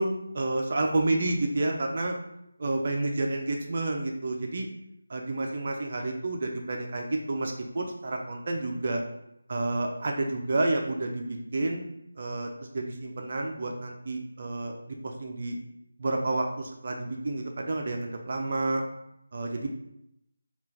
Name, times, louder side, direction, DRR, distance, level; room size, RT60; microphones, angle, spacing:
voice 1, 0.0-2.2 2.6-4.7 5.1-9.0 9.5-11.9 12.2-15.6 16.0-18.8 19.3-19.7, right 2 dB, 45° right, 2 dB, 0.3 m, -30 dB
3.6 x 2.2 x 2.7 m, 0.79 s
figure-of-eight pair, 160°, 0 cm